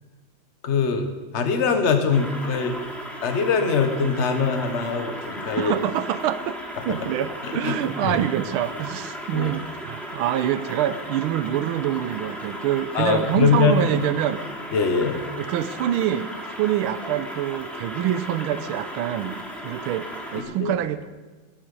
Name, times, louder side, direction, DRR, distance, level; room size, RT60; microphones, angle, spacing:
voice 1, 0.6-2.7 3.2-5.7 6.8-7.0 7.4-7.7 8.0-8.2 9.3-9.5 12.9-13.9 14.7-15.2 20.3-20.7, left 5 dB, 40° left, 7 dB, 1.3 m, -23 dB
sound 1, 2.1-20.4, equal, ahead, 1.5 m, -36 dB
voice 2, 5.6-6.6 6.9-14.4 15.4-19.4 19.6-21.0, right 11 dB, 85° right, 12 dB, 1.5 m, -26 dB
13.5 x 11.5 x 5.4 m, 1.3 s
omnidirectional pair, 2.3 m